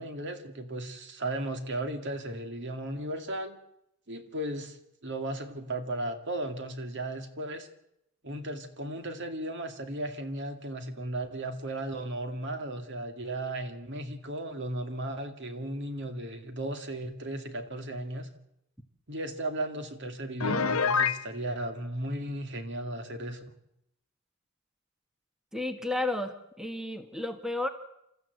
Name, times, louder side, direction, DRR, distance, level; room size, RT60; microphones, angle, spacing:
voice 1, 0.0-3.6 4.1-4.8 5.0-7.7 8.2-18.3 19.1-23.4, right 1 dB, 60° right, 7 dB, 2.3 m, -35 dB
Piano, 20.4-21.2, left 5 dB, 80° left, 0.9 m, -26 dB
voice 2, 25.5-27.7, left 2 dB, ahead, 7 dB, 1.3 m, -32 dB
28.0 x 14.0 x 8.0 m, 0.81 s
head